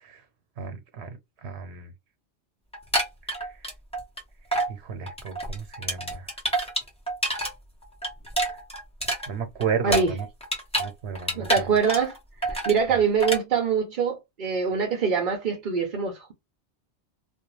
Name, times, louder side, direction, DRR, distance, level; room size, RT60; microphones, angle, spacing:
voice 1, 0.6-1.1 1.4-1.9 3.4-3.5 4.7-6.3 9.3-10.3 10.8-11.7 12.9-13.0, right 6 dB, 80° right, 0.9 m, -33 dB
sound 1, 2.7-4.2 4.5-4.7 5.1-7.5 7.8-10.9 11.2-12.2 12.4-12.8 13.2-13.4, right 1 dB, 5° left, 0.9 m, -27 dB
voice 2, 9.8-10.1 11.3-12.2 12.4-16.3, right 6 dB, 55° right, 0.7 m, -24 dB
2.4 x 2.1 x 3.0 m
omnidirectional pair, 1.1 m